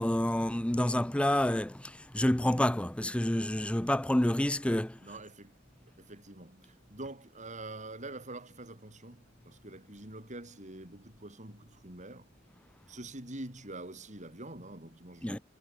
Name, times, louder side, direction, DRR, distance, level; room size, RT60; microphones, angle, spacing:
voice 1, 0.0-5.0 15.2-15.4, left 1 dB, 5° left, 0.5 m, -28 dB
voice 2, 5.0-5.5 6.0-12.3 12.9-15.4, right 2 dB, 40° right, 7.5 m, -45 dB
head